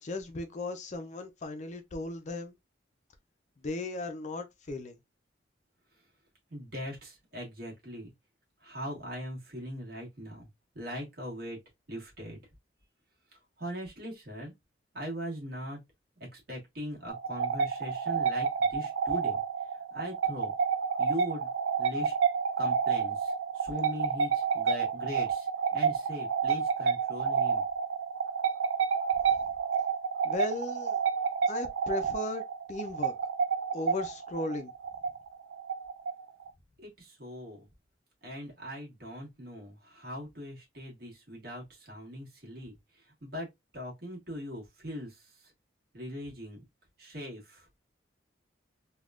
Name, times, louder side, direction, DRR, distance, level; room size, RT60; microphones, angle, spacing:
voice 1, 0.0-2.5 3.6-5.0 30.2-31.0 31.5-32.4 32.7-33.1 33.7-34.7, left 2 dB, 40° left, 0.4 m, -36 dB
voice 2, 6.5-8.1 8.6-10.5 10.7-11.6 11.9-12.4 13.3-14.5 14.9-15.8 16.2-19.4 19.9-20.5 21.0-21.5 21.8-22.1 22.6-27.6 36.8-37.7 38.2-43.5 43.7-45.5 45.9-46.6 47.0-47.7, equal, 55° right, 1.5 m, -40 dB
sound 1, 17.1-36.5, right 6 dB, 85° right, 0.4 m, -29 dB
3.4 x 2.3 x 2.3 m
head